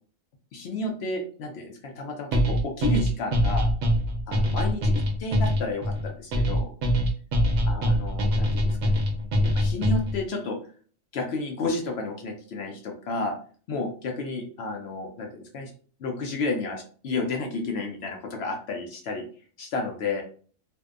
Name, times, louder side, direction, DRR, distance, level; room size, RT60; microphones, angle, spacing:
voice 1, 0.5-3.7 4.3-4.9 5.2-6.7 7.7-9.0 9.5-10.6 11.1-13.4 13.7-15.7 16.0-19.2 19.6-20.2, left 3 dB, 65° left, 3 dB, 0.7 m, -31 dB
sound 1, 2.3-10.2, equal, 75° right, 1.0 m, -23 dB
2.5 x 2.1 x 2.4 m, 0.43 s
omnidirectional pair, 1.4 m